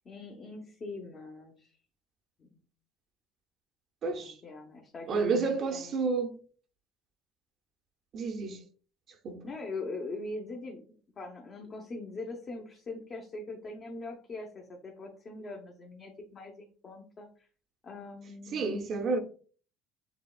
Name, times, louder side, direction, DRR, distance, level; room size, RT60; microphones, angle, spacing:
voice 1, 0.0-1.8 2.4-2.6 4.2-6.0 9.4-10.8 11.2-17.5 17.8-18.7, left 2 dB, 30° left, 0.8 m, -42 dB
voice 2, 4.0-4.4 5.1-6.4 8.1-8.6 9.2-9.4 18.5-19.2, right 4 dB, 40° right, 0.6 m, -30 dB
6.8 x 2.9 x 2.3 m
cardioid pair, 140°, 0 cm